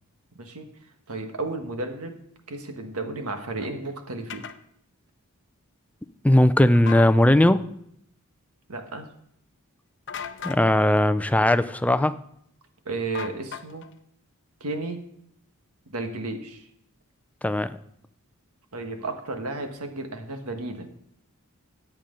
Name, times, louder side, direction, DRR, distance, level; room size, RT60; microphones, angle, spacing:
voice 1, 1.1-2.1 2.5-4.4 8.7-9.1 12.9-13.8 14.6-15.0 15.9-16.6 18.7-20.9, right 2 dB, 90° right, 6 dB, 1.4 m, -33 dB
sound 1, 4.3-4.6 6.7-7.1 10.1-10.6 13.1-13.9, left 7 dB, 55° left, 0.7 m, -36 dB
voice 2, 6.2-7.6 10.4-12.1 17.4-17.7, left 1 dB, 5° left, 12 dB, 0.4 m, -18 dB
14.0 x 8.8 x 3.8 m, 0.71 s
head